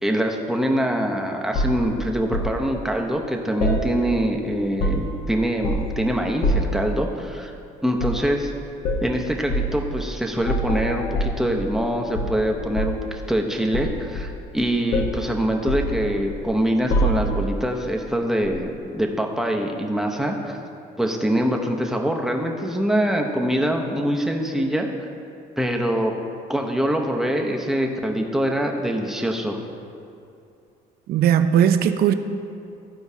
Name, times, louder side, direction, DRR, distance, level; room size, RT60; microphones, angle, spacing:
voice 1, 0.0-7.5 7.8-8.5 9.0-20.6 21.0-25.1 25.6-26.1 26.5-29.6, equal, ahead, 1 dB, 0.7 m, -24 dB
sound 1, 1.5-2.5 3.6-4.3 4.6-5.2 5.6-6.0 6.4-6.8 7.9-8.3 8.8-9.1 9.5-9.7 10.4-11.9 12.1-13.1 13.7-14.6 14.9-15.2 15.7-16.5 16.9-17.5 18.4-18.6, equal, 60° left, 1.1 m, -25 dB
voice 2, 31.1-32.1, right 9 dB, 65° right, 9 dB, 0.5 m, -18 dB
13.5 x 4.6 x 2.7 m, 2.6 s
cardioid pair, 110°, 17 cm